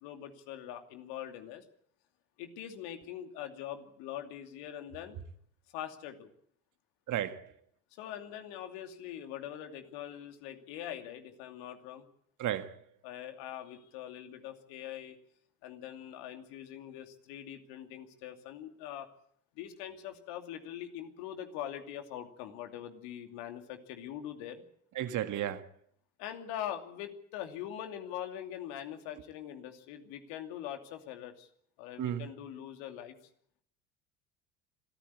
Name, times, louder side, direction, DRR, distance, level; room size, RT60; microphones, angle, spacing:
voice 1, 0.0-1.6 2.4-5.2 5.7-6.3 7.9-12.0 13.0-15.2 15.6-19.1 19.6-24.6 26.2-31.5 31.8-33.2, left 10 dB, 65° left, 2.7 m, -43 dB
voice 2, 7.1-7.4 12.4-12.8 25.0-25.7 32.0-32.3, right 11 dB, 50° right, 2.0 m, -33 dB
26.0 x 14.0 x 8.5 m
hypercardioid pair, 65°, 40 cm